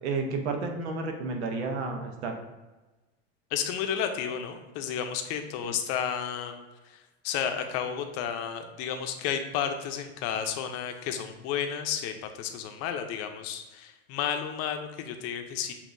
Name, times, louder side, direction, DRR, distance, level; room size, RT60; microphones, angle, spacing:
voice 1, 0.0-2.4 5.6-5.7, right 3 dB, 90° right, 4 dB, 0.9 m, -31 dB
voice 2, 3.5-6.5 7.2-15.7, left 8 dB, 50° left, 6 dB, 0.6 m, -32 dB
7.2 x 2.7 x 2.6 m, 1.1 s
supercardioid pair, 130°, 32 cm